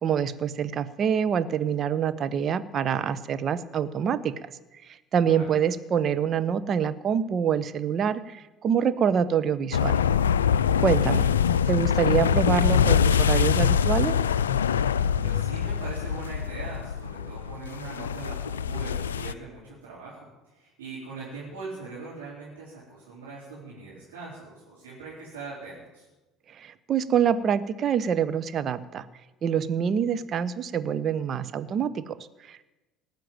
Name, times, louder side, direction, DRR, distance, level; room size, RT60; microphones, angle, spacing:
voice 1, 0.0-4.3 5.1-10.0 10.8-11.3 11.7-14.1 26.6-29.0 29.4-32.7, right 8 dB, 45° right, 13 dB, 0.9 m, -26 dB
voice 2, 5.2-5.6 15.2-26.0, right 3 dB, 80° right, -7 dB, 4.2 m, -41 dB
sound 1, 9.7-19.3, left 8 dB, 80° left, 0.4 m, -24 dB
18.5 x 7.6 x 9.1 m, 1.1 s
figure-of-eight pair, 65°, 0 cm